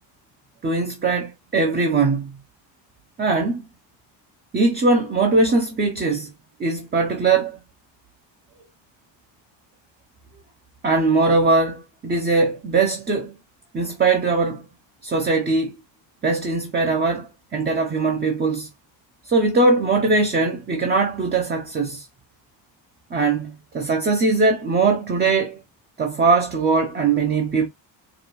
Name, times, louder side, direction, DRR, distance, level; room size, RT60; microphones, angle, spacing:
voice 1, 0.6-2.3 3.2-3.6 4.5-6.3 6.6-7.6 10.8-13.3 13.7-14.6 15.0-15.7 16.2-18.7 19.2-22.1 23.1-25.6 26.0-27.7, right 3 dB, 20° right, 0.6 m, -20 dB
4.9 x 2.3 x 3.0 m
cardioid pair, 150°, 45 cm